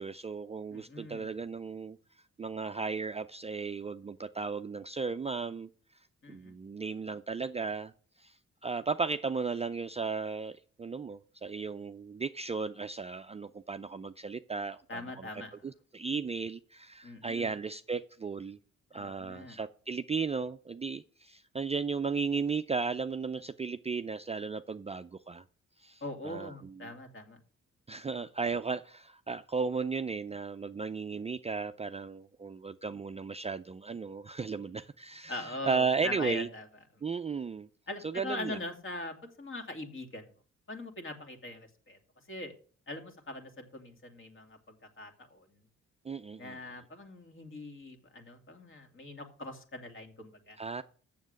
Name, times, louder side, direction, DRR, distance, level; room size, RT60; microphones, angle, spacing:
voice 1, 0.0-2.0 2.4-5.7 6.3-7.9 8.2-8.3 8.6-15.3 15.6-18.6 18.9-25.4 25.8-26.9 27.9-36.5 37.0-37.7 38.0-38.6 46.0-46.6 50.6-50.8, right 4 dB, 20° right, 0.4 m, -35 dB
voice 2, 0.7-1.3 6.2-6.5 14.9-15.6 17.0-17.5 18.9-19.6 26.0-27.4 35.3-36.7 37.9-40.3 40.7-42.0 42.3-42.5 42.9-44.6 45.0-45.6 46.4-50.6, left 2 dB, 40° left, 2.2 m, -42 dB
7.3 x 7.2 x 6.5 m
supercardioid pair, 60°, 31 cm